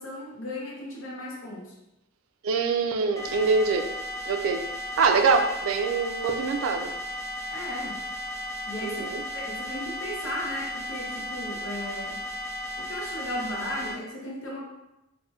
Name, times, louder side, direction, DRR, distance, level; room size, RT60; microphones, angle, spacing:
voice 1, 0.0-1.6 7.5-8.0 8.7-12.2 12.8-14.6, left 1 dB, 70° left, -3 dB, 0.8 m, -36 dB
voice 2, 2.4-3.9 4.3-4.7 5.0-6.9 8.8-9.2, right 4 dB, 75° right, 5 dB, 0.3 m, -24 dB
sound 1, 3.2-13.9, equal, 15° left, 0.3 m, -35 dB
3.0 x 2.2 x 3.0 m, 0.93 s
head